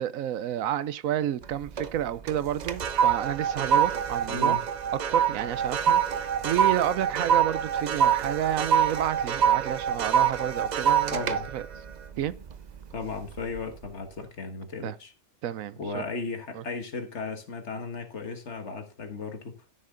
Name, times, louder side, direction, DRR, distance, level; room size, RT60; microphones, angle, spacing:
voice 1, 0.0-4.6 5.1-11.2 11.5-11.6 12.2-12.3 14.8-15.0 15.4-16.0 16.5-16.6, right 11 dB, 90° right, 1.1 m, -30 dB
sound 1, 1.4-2.0 2.3-12.8 13.3-13.6, right 8 dB, 55° right, 0.5 m, -25 dB
voice 2, 4.3-4.6 11.1-11.5 12.9-15.1 15.8-19.6, left 4 dB, 60° left, 1.7 m, -35 dB
12.5 x 6.6 x 3.8 m
omnidirectional pair, 1.4 m